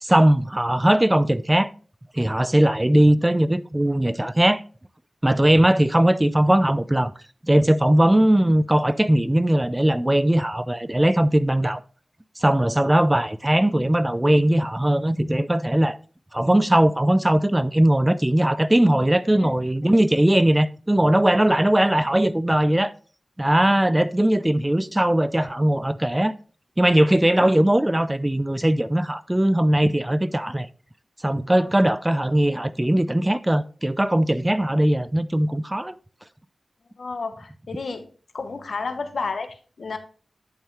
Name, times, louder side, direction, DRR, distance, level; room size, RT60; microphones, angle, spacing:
voice 1, 0.0-1.7 2.1-4.6 5.2-7.1 7.4-11.8 12.4-16.0 16.3-22.9 23.4-26.3 26.8-30.7 31.2-36.0, right 1 dB, 20° right, 0.5 m, -19 dB
voice 2, 37.0-38.1 38.3-40.0, left 4 dB, 70° left, 1.0 m, -31 dB
10.5 x 5.5 x 3.2 m
cardioid pair, 45°, 0 cm